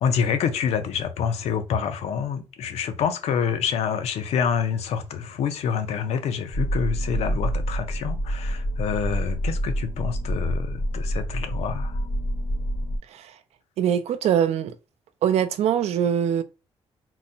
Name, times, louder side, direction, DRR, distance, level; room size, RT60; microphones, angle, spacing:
voice 1, 0.0-12.0, left 7 dB, 85° left, 0.6 m, -27 dB
sound 1, 6.5-13.0, equal, 30° left, 0.6 m, -27 dB
voice 2, 13.8-14.7 15.2-16.4, right 9 dB, 80° right, 0.4 m, -22 dB
3.8 x 2.1 x 2.6 m
cardioid pair, 125°, 11 cm